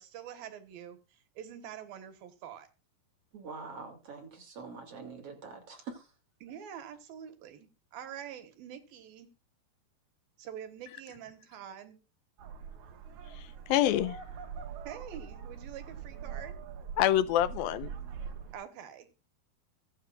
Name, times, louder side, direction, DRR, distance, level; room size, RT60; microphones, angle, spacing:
voice 1, 0.0-2.7 6.4-9.3 10.4-12.0 14.8-16.6 18.5-19.1, right 9 dB, 80° right, 3.3 m, -46 dB
voice 2, 3.3-6.1, right 4 dB, 40° right, 3.6 m, -44 dB
sound 1, 12.4-18.5, right 7 dB, 60° right, 2.6 m, -43 dB
voice 3, 13.4-14.2 17.0-17.9, left 12 dB, 85° left, 2.5 m, -27 dB
23.0 x 7.7 x 2.5 m
omnidirectional pair, 4.2 m